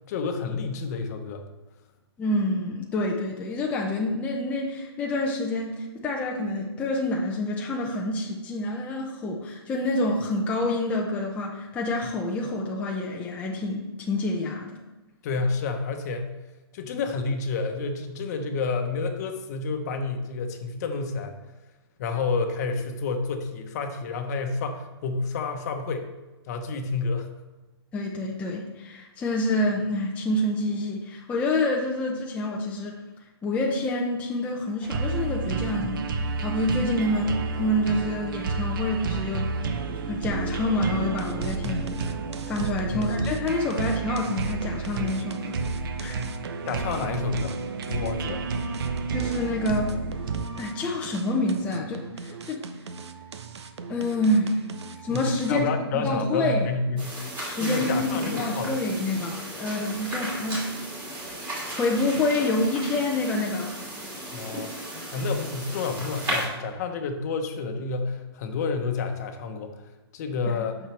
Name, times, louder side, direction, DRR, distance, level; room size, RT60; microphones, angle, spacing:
voice 1, 0.1-1.4 15.2-16.3 16.7-21.4 22.0-26.1 26.5-27.3 35.8-36.0 39.7-40.0 41.6-41.9 42.9-43.1 46.6-47.5 47.9-48.4 55.1-57.2 57.6-58.8 64.3-64.7 65.1-70.8, left 4 dB, 40° left, 6 dB, 1.0 m, -29 dB
voice 2, 2.2-14.8 27.9-33.0 33.4-39.8 40.1-41.8 42.5-45.6 46.0-46.2 49.1-49.9 50.5-52.6 53.9-54.6 55.0-55.7 55.9-56.7 57.4-60.8 61.7-63.7, left 1 dB, 10° left, -2 dB, 0.6 m, -27 dB
sound 1, 34.8-50.5, right 4 dB, 50° right, 0.8 m, -31 dB
sound 2, 41.0-55.7, right 5 dB, 80° right, 0.9 m, -40 dB
sound 3, 57.0-66.4, right 1 dB, 15° right, 2.8 m, -35 dB
9.0 x 6.4 x 3.4 m, 1.1 s
hypercardioid pair, 155°, 14 cm